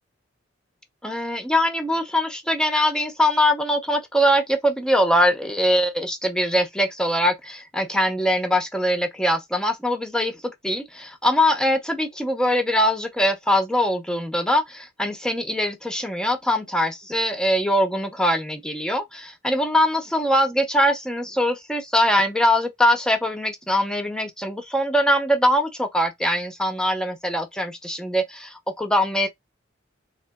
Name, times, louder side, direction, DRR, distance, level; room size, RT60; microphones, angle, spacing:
voice 1, 1.0-29.3, equal, 5° left, 0.6 m, -22 dB
3.8 x 3.0 x 2.2 m
head